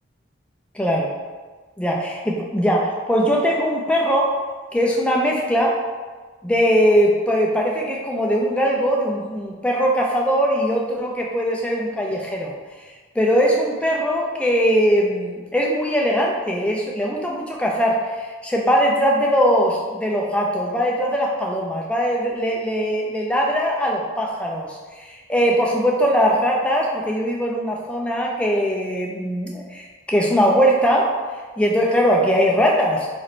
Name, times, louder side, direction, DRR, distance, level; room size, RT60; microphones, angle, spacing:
voice 1, 0.7-1.2 1.8-4.4 4.7-5.8 6.4-12.5 13.2-31.1 31.6-33.1, equal, 5° left, -2 dB, 0.4 m, -20 dB
3.0 x 2.5 x 4.2 m, 1.4 s
head